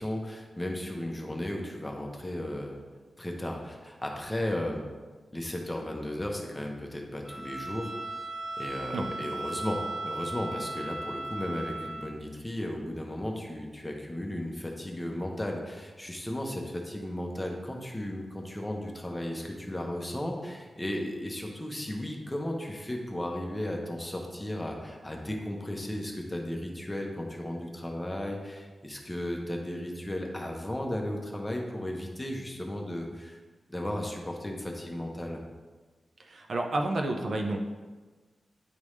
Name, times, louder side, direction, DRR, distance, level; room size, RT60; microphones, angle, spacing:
voice 1, 0.0-2.8 3.2-4.8 5.3-7.9 8.6-33.4 33.7-35.4, left 1 dB, 10° left, 1 dB, 0.8 m, -35 dB
Bowed string instrument, 7.2-12.1, right 2 dB, 40° right, 1.2 m, -37 dB
voice 2, 36.2-37.6, right 2 dB, 60° right, 2 dB, 0.6 m, -30 dB
9.7 x 3.5 x 3.2 m, 1.3 s
wide cardioid pair, 130°, 0 cm